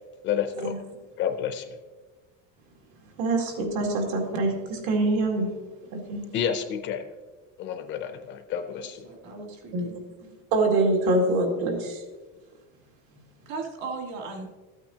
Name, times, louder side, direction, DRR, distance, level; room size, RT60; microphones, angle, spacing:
voice 1, 0.2-0.7 1.2-1.7 6.3-7.0 7.6-9.1, left 8 dB, 35° left, 7 dB, 0.5 m, -29 dB
voice 2, 3.2-5.5 5.9-6.2 9.7-9.9 10.5-12.0, right 2 dB, 75° right, 1 dB, 2.3 m, -25 dB
voice 3, 8.7-10.3 13.5-14.5, right 4 dB, 50° right, 1 dB, 1.9 m, -38 dB
13.5 x 8.8 x 2.8 m, 1.2 s
cardioid pair, 180°, 35 cm